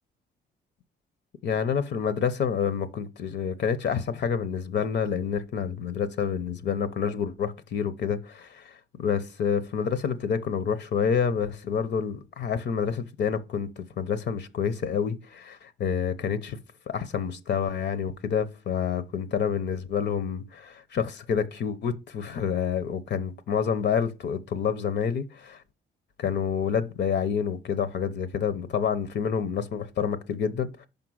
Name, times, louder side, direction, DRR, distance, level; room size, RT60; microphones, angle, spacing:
voice 1, 1.4-16.6 16.9-25.6 26.2-30.9, left 7 dB, 60° left, 0.8 m, -28 dB
5.5 x 5.2 x 6.2 m
cardioid pair, 90°, 20 cm